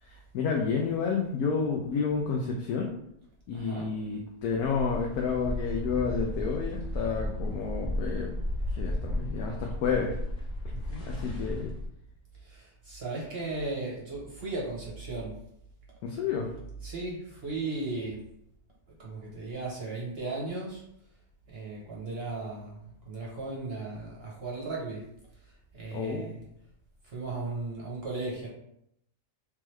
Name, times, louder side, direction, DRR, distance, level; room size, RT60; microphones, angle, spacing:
voice 1, 0.0-2.9 3.5-8.3 8.7-10.2 11.0-11.7 16.0-16.5 25.9-26.2, left 5 dB, 75° left, 0 dB, 1.0 m, -30 dB
voice 2, 3.5-3.9 10.7-11.1 12.4-15.4 16.8-18.3 19.0-20.8 21.5-25.1 25.4-26.4 27.0-28.5, right 3 dB, 45° right, -3 dB, 0.9 m, -36 dB
sound 1, 4.6-11.9, left 1 dB, 50° left, 1.1 m, -34 dB
3.6 x 3.1 x 3.1 m, 0.75 s
omnidirectional pair, 1.7 m